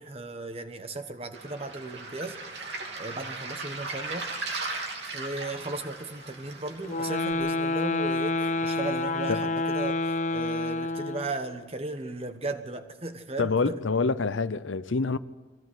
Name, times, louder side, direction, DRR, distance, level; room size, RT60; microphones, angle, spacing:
voice 1, 0.0-4.3 5.1-13.8, right 2 dB, 30° right, 1.4 m, -36 dB
Waves surf, 1.3-7.3, right 3 dB, 60° right, 2.9 m, -37 dB
sound 1, 6.8-11.4, left 2 dB, 40° left, 0.9 m, -28 dB
voice 2, 13.4-15.2, left 4 dB, 85° left, 0.7 m, -26 dB
22.5 x 17.0 x 8.1 m
head